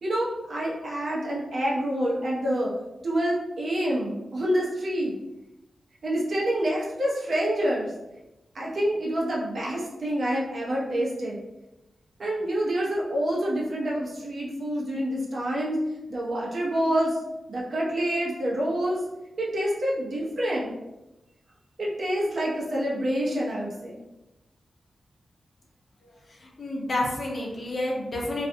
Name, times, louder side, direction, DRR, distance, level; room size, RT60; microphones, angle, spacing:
voice 1, 0.0-2.7 3.0-5.1 6.0-7.9 8.5-11.4 12.2-15.8 16.1-17.2 17.5-19.0 19.4-20.7 21.8-24.0, right 1 dB, 60° right, -5 dB, 0.7 m, -27 dB
voice 2, 26.4-28.5, left 1 dB, 55° left, -2 dB, 0.6 m, -29 dB
2.4 x 2.2 x 2.7 m, 0.99 s
wide cardioid pair, 95°, 0 cm